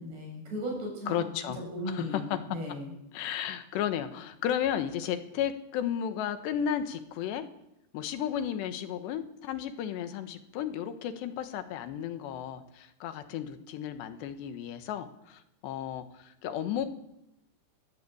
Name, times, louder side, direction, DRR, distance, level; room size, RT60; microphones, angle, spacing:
voice 1, 0.0-1.3 1.7-2.9, equal, 70° right, 0 dB, 9.8 m, -36 dB
voice 2, 1.1-2.4 3.1-7.5 7.9-16.9, left 9 dB, 80° left, 9 dB, 3.5 m, -33 dB
20.5 x 16.5 x 8.6 m, 0.85 s
omnidirectional pair, 5.0 m